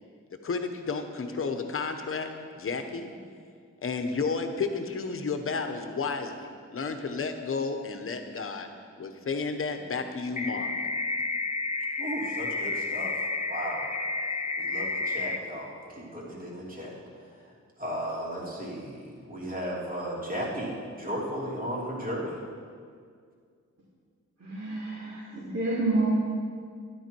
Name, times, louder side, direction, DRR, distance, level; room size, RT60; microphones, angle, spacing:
voice 1, 0.4-3.1 3.8-8.7 9.0-10.7, left 4 dB, 45° left, 6 dB, 1.0 m, -32 dB
sound 1, 10.4-15.4, left 3 dB, 25° left, 0.6 m, -31 dB
voice 2, 12.0-13.9 14.6-17.5 17.8-22.4, equal, 30° right, -5 dB, 2.9 m, -35 dB
voice 3, 24.4-26.1, right 2 dB, 65° right, -9 dB, 3.3 m, -29 dB
12.5 x 11.0 x 4.6 m, 2.1 s
wide cardioid pair, 135°, 29 cm